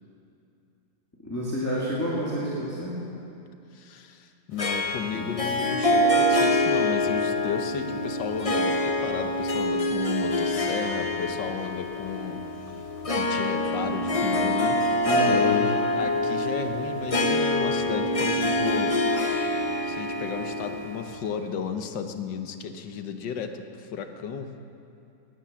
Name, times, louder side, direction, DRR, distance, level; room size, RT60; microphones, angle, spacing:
voice 1, 1.2-2.9 5.1-5.3 15.0-15.7, equal, 10° left, -7 dB, 2.2 m, -29 dB
voice 2, 3.7-12.8 13.1-14.8 15.2-19.5 19.8-24.5, left 6 dB, 75° left, 7 dB, 1.6 m, -34 dB
Harp, 4.6-21.3, left 1 dB, 55° left, 0.3 m, -25 dB
19.0 x 9.6 x 7.5 m, 2.6 s
omnidirectional pair, 2.0 m